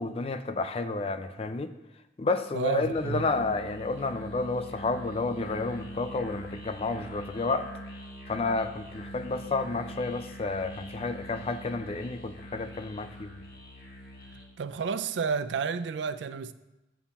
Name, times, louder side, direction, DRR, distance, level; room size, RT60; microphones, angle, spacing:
voice 1, 0.0-1.7 2.2-7.7 8.3-13.3, left 3 dB, 35° left, 0.4 m, -31 dB
voice 2, 2.5-3.3 14.6-16.5, right 5 dB, 80° right, 0.4 m, -31 dB
Musical instrument, 2.8-14.6, equal, 55° left, 1.7 m, -43 dB
7.2 x 7.1 x 4.2 m
head